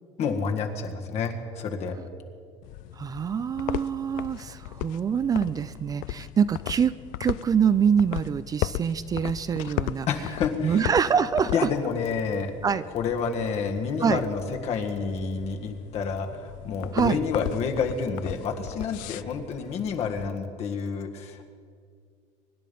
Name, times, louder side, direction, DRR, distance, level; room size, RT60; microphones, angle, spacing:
voice 1, 0.2-2.0 10.1-10.8 11.5-12.5 12.9-21.4, left 5 dB, 55° left, 4 dB, 1.8 m, -29 dB
sound 1, 2.6-20.3, left 17 dB, 75° left, 0.4 m, -37 dB
voice 2, 3.0-6.9 7.2-10.1 10.6-11.7 12.6-12.8 14.0-14.2 16.9-17.2, right 7 dB, 25° right, 14 dB, 0.4 m, -25 dB
24.5 x 10.5 x 5.4 m, 2.2 s
cardioid pair, 125°, 13 cm